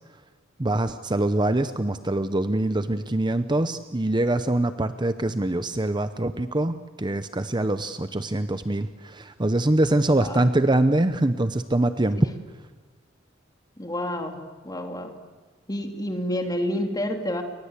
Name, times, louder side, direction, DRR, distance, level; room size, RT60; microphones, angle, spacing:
voice 1, 0.6-12.2, right 1 dB, 25° right, 10 dB, 0.8 m, -24 dB
voice 2, 13.8-15.1 15.7-17.4, left 1 dB, 20° left, 4 dB, 3.0 m, -29 dB
30.0 x 24.0 x 8.3 m, 1.3 s
head